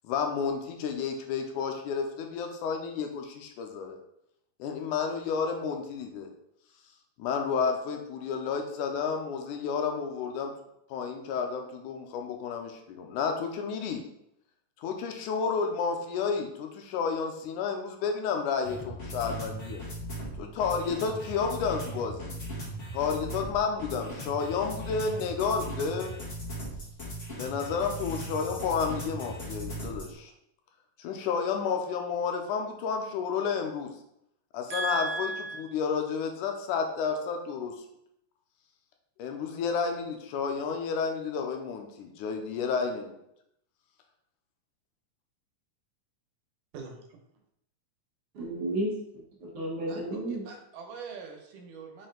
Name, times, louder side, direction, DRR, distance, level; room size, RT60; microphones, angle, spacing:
voice 1, 0.0-4.0 4.6-6.3 7.2-10.5 10.9-14.0 14.8-19.9 20.4-22.4 22.9-26.1 27.3-30.3 31.0-33.9 34.5-35.3 35.6-37.7 39.2-43.1, left 5 dB, 80° left, 3 dB, 2.2 m, -31 dB
sound 1, 18.6-30.1, right 1 dB, 30° left, 1.4 m, -38 dB
voice 2, 34.7-35.6 48.4-50.4, right 1 dB, 55° right, -4 dB, 2.1 m, -33 dB
voice 3, 46.7-47.0 49.9-52.1, right 5 dB, 85° right, 3 dB, 2.5 m, -44 dB
5.6 x 4.4 x 3.8 m, 0.78 s
omnidirectional pair, 3.6 m